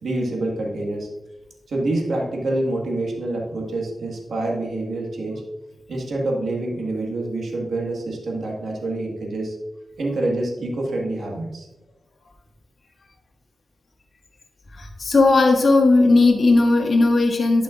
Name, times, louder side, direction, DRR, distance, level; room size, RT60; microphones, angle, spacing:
voice 1, 0.0-1.1 1.7-5.4 5.9-9.6 10.0-11.7, right 2 dB, 80° right, -1 dB, 1.7 m, -26 dB
voice 2, 14.7-17.6, left 3 dB, 60° left, 1 dB, 1.6 m, -16 dB
11.0 x 5.9 x 2.5 m, 1.0 s
cardioid pair, 75°, 0 cm